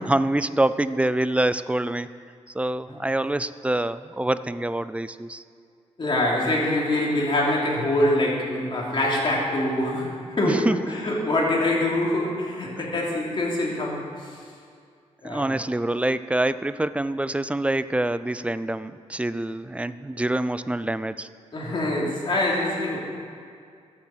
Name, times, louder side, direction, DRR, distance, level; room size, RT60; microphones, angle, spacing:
voice 1, 0.0-2.1 2.5-5.4 10.4-10.8 15.2-21.3, right 1 dB, 10° right, 14 dB, 0.3 m, -25 dB
voice 2, 6.0-14.3 15.2-15.5 21.5-23.0, left 1 dB, 45° left, -3 dB, 3.0 m, -24 dB
13.0 x 7.3 x 7.7 m, 2.3 s
wide cardioid pair, 115°, 12 cm